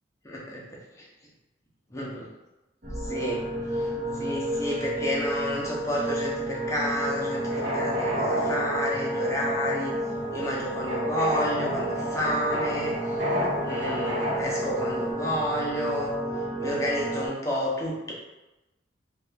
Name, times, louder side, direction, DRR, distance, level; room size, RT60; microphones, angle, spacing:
voice 1, 0.2-0.6 1.0-1.1 1.9-2.3 3.0-3.4 3.7-3.9 4.2-9.9 10.3-13.0 13.6-16.2 16.6-18.1, equal, 15° left, -4 dB, 0.6 m, -30 dB
sound 1, 2.8-17.3, right 1 dB, 55° right, 1.1 m, -31 dB
sound 2, 6.9-15.1, left 1 dB, 75° right, 1.2 m, -32 dB
2.7 x 2.5 x 3.4 m, 1.0 s
head